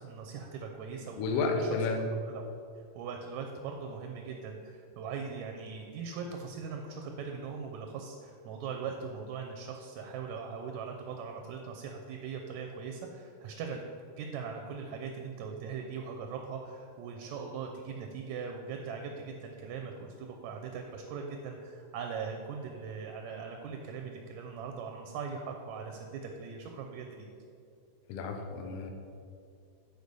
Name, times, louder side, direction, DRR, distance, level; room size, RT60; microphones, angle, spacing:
voice 1, 0.0-1.7 2.3-2.5 3.0-13.9 14.2-27.3, right 5 dB, 80° right, 3 dB, 1.8 m, -40 dB
voice 2, 1.1-2.0 28.1-28.9, left 4 dB, 85° left, 4 dB, 1.4 m, -31 dB
6.5 x 4.8 x 5.3 m, 2.4 s
omnidirectional pair, 3.5 m